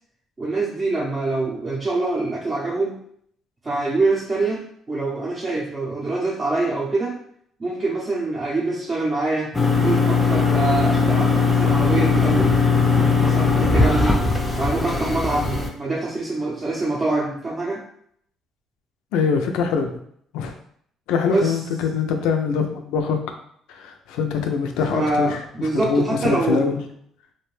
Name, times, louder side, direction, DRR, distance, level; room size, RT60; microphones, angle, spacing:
voice 1, 0.4-3.0 3.6-7.1 7.6-9.5 9.8-12.6 13.1-14.2 14.6-17.8 21.3-21.6 24.9-26.7, right 2 dB, 30° right, -5 dB, 0.6 m, -25 dB
sound 1, 9.5-15.7, left 4 dB, 15° left, 0.4 m, -19 dB
voice 2, 19.1-19.9 20.3-20.5 21.1-23.2 23.7-26.8, left 5 dB, 85° left, 5 dB, 0.4 m, -23 dB
2.6 x 2.1 x 3.1 m, 0.66 s
cardioid pair, 90°, 0 cm